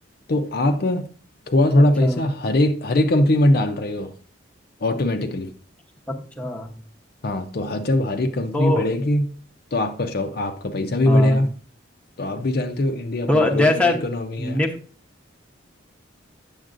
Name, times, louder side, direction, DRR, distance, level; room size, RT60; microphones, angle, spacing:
voice 1, 0.3-1.1 1.5-4.1 4.8-5.5 7.2-9.3 9.7-11.5 12.2-14.6, left 1 dB, 50° left, 0.6 m, -21 dB
voice 2, 6.1-6.7 8.5-8.9 11.0-11.4 13.3-14.0 14.4-14.8, left 1 dB, 5° left, 0.8 m, -22 dB
8.9 x 7.0 x 2.5 m
head